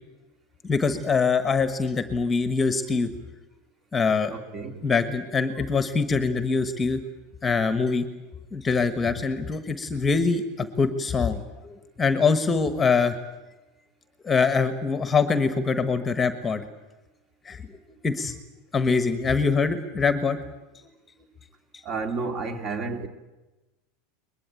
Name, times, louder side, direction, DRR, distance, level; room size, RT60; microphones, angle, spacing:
voice 1, 0.6-3.1 3.9-4.3 4.8-7.0 7.4-8.1 8.5-13.1 14.2-16.6 17.4-17.6 18.0-18.4 18.7-20.4, left 4 dB, 15° left, 1.3 m, -24 dB
voice 2, 4.3-4.9 21.8-23.1, right 4 dB, 30° right, 2.5 m, -31 dB
22.5 x 21.0 x 9.1 m
supercardioid pair, 150°, 0 cm